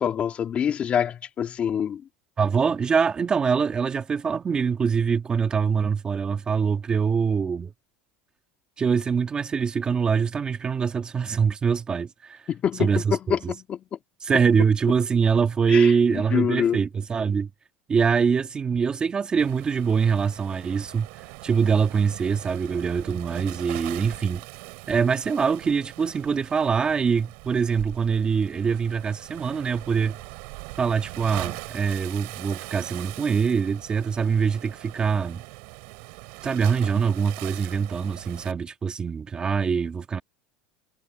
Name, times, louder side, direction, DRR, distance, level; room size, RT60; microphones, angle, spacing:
voice 1, 0.0-2.0 12.5-13.4 13.7-13.8 15.7-16.8, left 8 dB, 25° left, 2.1 m, -25 dB
voice 2, 2.4-7.7 8.8-12.4 12.8-13.5 14.2-17.5 17.9-24.4 24.9-30.2 30.8-35.4 36.4-40.2, right 6 dB, 20° right, 1.9 m, -24 dB
Waves surf, 19.4-38.5, right 34 dB, 60° right, 6.1 m, -41 dB
supercardioid pair, 150°, 5 cm